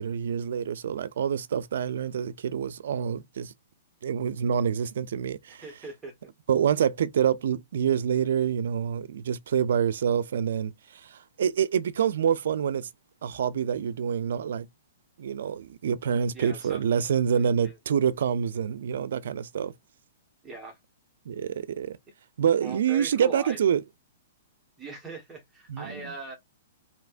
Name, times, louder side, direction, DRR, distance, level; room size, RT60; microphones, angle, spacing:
voice 1, 0.0-3.5 4.0-5.6 6.5-10.7 11.0-12.9 13.2-14.7 15.2-19.7 21.3-22.0 22.4-23.8 25.7-26.1, right 8 dB, 70° right, 0.4 m, -26 dB
voice 2, 5.5-6.1 16.3-16.8 17.3-17.8 20.4-20.8 22.6-23.6 24.8-26.4, right 3 dB, 15° right, 1.3 m, -41 dB
3.3 x 2.8 x 2.4 m
hypercardioid pair, 150°, 0 cm